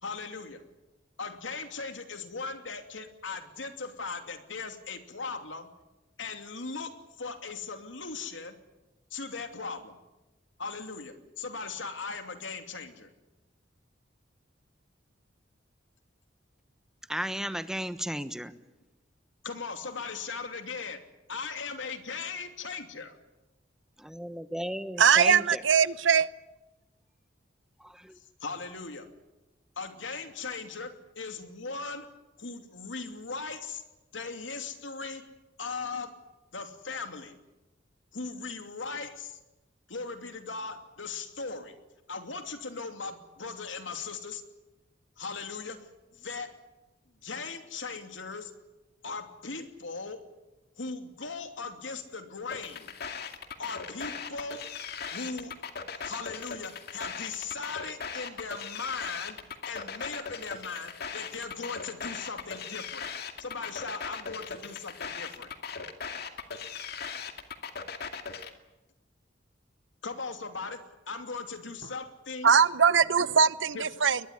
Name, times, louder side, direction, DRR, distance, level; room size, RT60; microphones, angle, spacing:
voice 1, 0.0-0.6 1.2-5.7 6.2-8.5 9.1-10.0 10.6-13.1 19.4-21.0 21.3-23.2 28.2-29.1 29.8-32.1 32.4-33.8 34.1-35.3 35.6-36.2 36.5-37.4 38.1-39.4 39.9-41.8 42.1-44.4 45.2-46.6 47.2-48.5 49.0-50.2 50.8-52.9 53.6-54.7 55.1-55.5 56.0-59.4 59.7-63.1 63.4-65.5 70.0-72.5 73.7-74.0, left 4 dB, 80° left, 2.8 m, -38 dB
voice 2, 17.1-18.5 24.0-25.6 27.8-28.2, equal, 5° right, 1.1 m, -34 dB
voice 3, 25.0-26.3 72.4-74.2, right 6 dB, 75° right, 0.9 m, -21 dB
sound 1, 52.5-68.5, left 6 dB, 55° left, 2.3 m, -39 dB
21.5 x 21.5 x 9.6 m
head